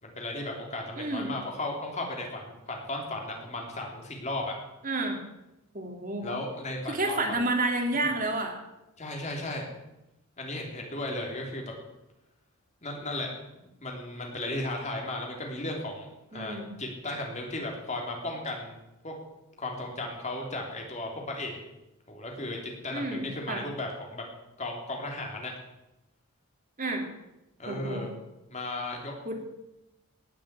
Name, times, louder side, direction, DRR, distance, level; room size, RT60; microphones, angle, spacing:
voice 1, 0.0-4.5 6.2-7.2 7.9-8.1 9.0-9.7 10.4-11.6 12.8-13.3 13.8-18.7 19.0-19.1 19.6-21.6 22.1-24.2 24.6-25.5 27.6-28.1 28.5-29.1, left 2 dB, 30° left, 0 dB, 3.2 m, -35 dB
voice 2, 1.0-1.3 4.8-5.2 5.7-6.3 6.9-8.6 16.3-16.7 22.9-23.6 26.8-27.1 27.7-28.0 29.2-29.3, right 2 dB, 35° right, 3 dB, 2.8 m, -30 dB
18.5 x 7.7 x 8.3 m, 0.95 s
head